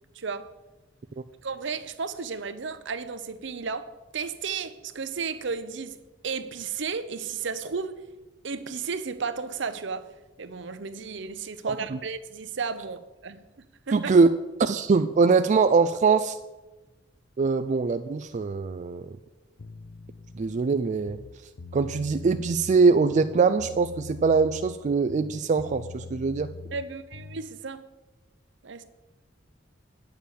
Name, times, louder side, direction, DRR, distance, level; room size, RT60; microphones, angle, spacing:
voice 1, 0.1-0.5 1.4-6.0 6.2-8.0 8.4-10.1 10.4-13.4 13.9-14.0 26.7-27.9 28.6-28.8, right 5 dB, 70° right, 0.7 m, -33 dB
voice 2, 11.7-12.0 13.9-14.3 14.6-16.4 17.4-19.1 20.3-21.2 21.7-26.5, right 4 dB, 40° right, 0.4 m, -22 dB
sound 1, 19.6-20.6 21.0-22.8 23.1-24.8 25.1-27.5, left 3 dB, 80° left, 0.6 m, -43 dB
9.1 x 6.8 x 6.9 m
head